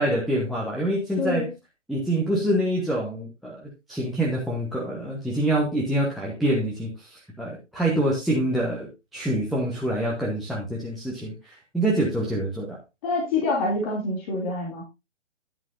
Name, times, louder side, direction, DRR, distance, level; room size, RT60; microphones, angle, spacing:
voice 1, 0.0-1.5 1.9-12.8, right 1 dB, ahead, -4 dB, 1.1 m, -26 dB
voice 2, 1.2-1.5 13.0-14.8, left 3 dB, 25° left, -3 dB, 2.8 m, -26 dB
11.0 x 10.5 x 2.6 m, 0.24 s
figure-of-eight pair, 135°, 36 cm